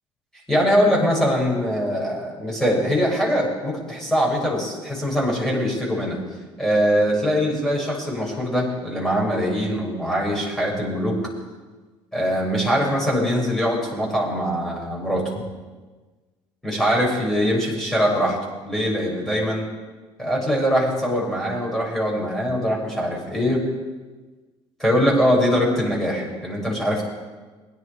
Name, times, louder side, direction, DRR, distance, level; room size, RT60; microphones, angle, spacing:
voice 1, 0.5-6.2 6.6-11.2 12.1-15.3 16.6-18.4 18.6-19.6 20.2-23.6 24.8-27.1, equal, 5° left, -3 dB, 6.7 m, -22 dB
23.0 x 10.5 x 5.0 m, 1.3 s
hypercardioid pair, 60°, 15 cm